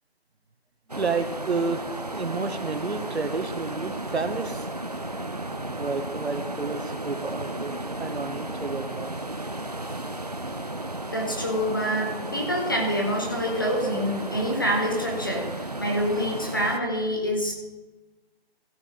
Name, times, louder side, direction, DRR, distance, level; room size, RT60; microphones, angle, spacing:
sound 1, 0.9-16.8, right 1 dB, 40° right, 0.5 m, -34 dB
voice 1, 1.0-1.8 2.1-4.7 5.4-9.1, right 4 dB, 85° right, 8 dB, 1.3 m, -31 dB
voice 2, 11.1-17.5, equal, 20° left, 0 dB, 1.3 m, -26 dB
16.0 x 6.8 x 4.3 m, 1.2 s
figure-of-eight pair, 180°, 31 cm